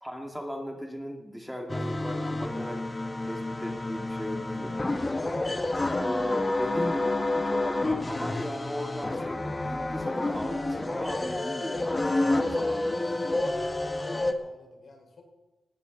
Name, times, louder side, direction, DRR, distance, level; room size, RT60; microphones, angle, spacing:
voice 1, 0.0-2.9 3.2-4.9 6.6-13.4, equal, 5° right, 2 dB, 2.1 m, -38 dB
sound 1, 1.7-14.3, left 2 dB, 25° left, 1.6 m, -29 dB
voice 2, 13.8-15.2, left 4 dB, 60° left, 2 dB, 4.8 m, -52 dB
19.0 x 17.0 x 4.0 m, 1.1 s
wide cardioid pair, 95°, 0 cm